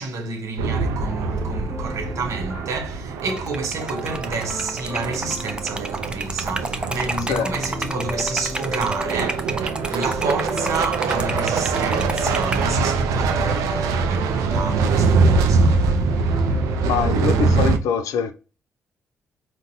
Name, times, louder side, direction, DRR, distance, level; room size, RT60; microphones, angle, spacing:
voice 1, 0.0-16.4, right 3 dB, 65° right, 0.7 m, -29 dB
sound 1, 0.6-17.8, right 4 dB, 90° right, 0.3 m, -23 dB
sound 2, 1.1-17.6, equal, 10° left, 0.9 m, -36 dB
Liquid, 3.2-12.7, right 2 dB, 15° right, 0.5 m, -31 dB
voice 2, 16.8-18.3, left 7 dB, 85° left, 0.4 m, -23 dB
3.9 x 2.1 x 2.6 m
supercardioid pair, 55°, 6 cm